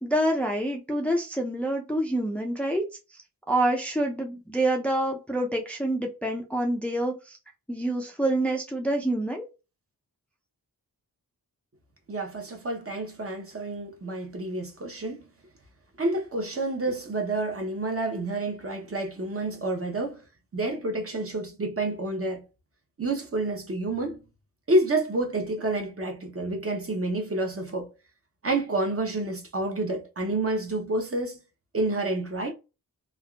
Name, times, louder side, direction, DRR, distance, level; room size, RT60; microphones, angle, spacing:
voice 1, 0.0-2.8 3.5-7.4 7.7-9.4, right 1 dB, 5° left, 0.5 m, -27 dB
voice 2, 12.1-15.2 16.0-20.2 20.5-22.5 23.0-24.2 24.7-27.9 28.4-31.4 31.7-32.5, right 2 dB, 35° right, 0.8 m, -29 dB
3.5 x 2.3 x 2.3 m
wide cardioid pair, 85°, 37 cm